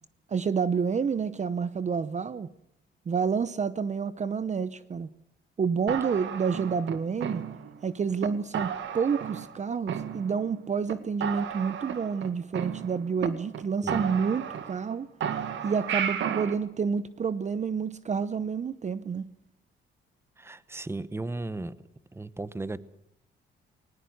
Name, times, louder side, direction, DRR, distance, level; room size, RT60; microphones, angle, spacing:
voice 1, 0.3-2.5 3.1-5.1 5.6-7.4 7.8-15.1 15.6-19.3, right 6 dB, 35° right, 15 dB, 0.8 m, -29 dB
sound 1, 5.9-7.8 8.2-8.3 8.5-9.6 9.9-10.6 10.9-11.0 11.2-13.3 13.5-13.6 13.9-14.9 15.2-16.5, right 8 dB, 70° right, 2.0 m, -33 dB
voice 2, 20.4-21.7 22.1-22.8, right 2 dB, 10° right, 16 dB, 1.0 m, -35 dB
19.0 x 19.0 x 8.0 m, 0.74 s
cardioid pair, 90°, 20 cm